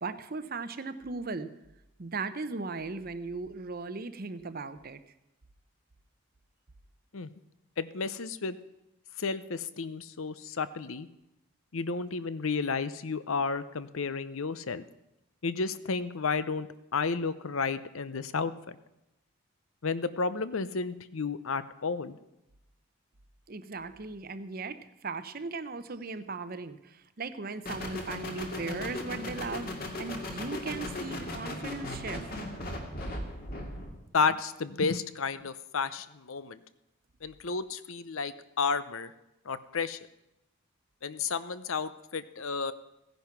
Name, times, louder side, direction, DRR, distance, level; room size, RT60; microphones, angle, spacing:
voice 1, 0.0-1.5 2.0-5.0 23.5-32.3, right 3 dB, 45° right, 12 dB, 0.7 m, -37 dB
voice 2, 7.8-8.6 9.2-11.1 11.7-14.8 15.4-16.7 16.9-18.8 19.8-22.2 34.1-36.6 37.2-39.1 39.5-40.0 41.0-42.7, left 4 dB, 70° left, 14 dB, 0.7 m, -32 dB
sound 1, 27.7-34.0, left 1 dB, 45° left, 2.2 m, -37 dB
16.0 x 10.5 x 5.9 m, 0.91 s
head